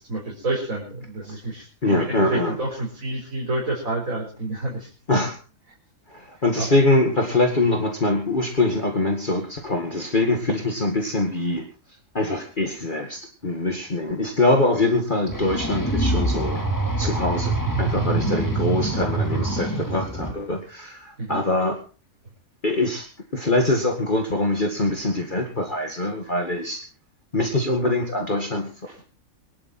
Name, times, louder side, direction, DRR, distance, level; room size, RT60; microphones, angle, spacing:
voice 1, 0.0-4.9 6.6-6.7 21.2-21.4 28.9-29.0, right 2 dB, 70° right, -2 dB, 5.0 m, -29 dB
voice 2, 1.8-2.6 5.1-5.4 6.1-11.6 12.1-16.6 17.0-21.8 22.6-23.1 23.3-26.8 27.3-28.7, left 2 dB, 35° left, 2 dB, 2.2 m, -23 dB
sound 1, 15.3-20.3, right 2 dB, 15° left, 2.2 m, -25 dB
23.5 x 11.5 x 4.3 m, 0.38 s
omnidirectional pair, 1.5 m